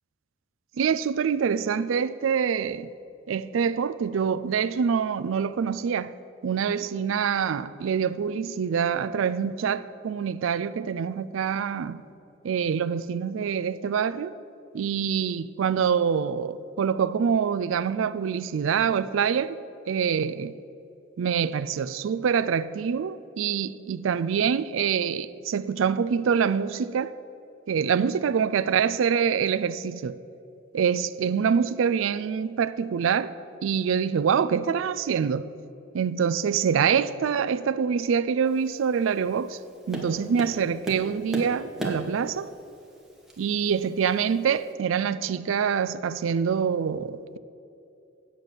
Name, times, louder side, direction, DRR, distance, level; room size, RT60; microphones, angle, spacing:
voice 1, 0.8-2.9 3.3-6.1 6.4-12.0 12.4-14.4 14.7-19.6 19.9-20.5 21.2-27.1 27.7-30.2 30.7-33.3 33.6-35.5 35.9-39.6 39.9-42.5 43.4-47.4, right 7 dB, 75° right, 0.4 m, -25 dB
Tap, 38.5-44.7, equal, ahead, 1.4 m, -39 dB
8.9 x 7.9 x 6.7 m
head